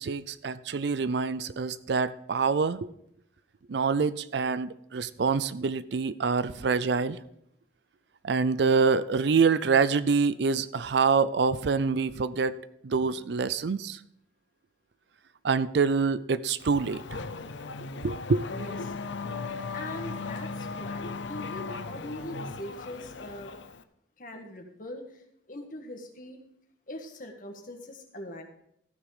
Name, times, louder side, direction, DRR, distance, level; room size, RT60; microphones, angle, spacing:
voice 1, 0.0-2.9 3.7-7.2 8.2-12.6 12.8-14.0 15.4-17.2 18.0-18.4, right 5 dB, 65° right, 16 dB, 0.5 m, -26 dB
Race car auto racing / Accelerating revving vroom, 16.6-23.8, left 4 dB, 80° left, 0.7 m, -37 dB
voice 2, 18.5-18.9 19.7-23.5 24.2-26.4 26.9-28.4, left 1 dB, 45° left, 4 dB, 1.6 m, -42 dB
14.5 x 6.4 x 5.0 m, 0.74 s
head